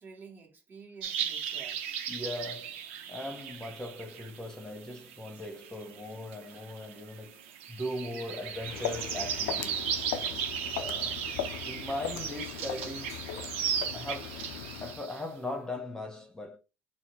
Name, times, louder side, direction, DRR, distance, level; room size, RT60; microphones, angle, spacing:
voice 1, 0.0-1.8 3.2-3.5, right 5 dB, 30° right, 1.7 m, -51 dB
sound 1, 1.0-15.2, right 8 dB, 85° right, 0.6 m, -37 dB
voice 2, 2.1-2.8 3.1-9.9 10.7-11.2 11.6-13.6 13.9-14.5 14.8-16.6, left 1 dB, 10° left, 1.0 m, -39 dB
Walk footsteps, 8.4-15.0, left 10 dB, 80° left, 0.5 m, -39 dB
4.4 x 2.1 x 4.0 m
hypercardioid pair, 75°, 7 cm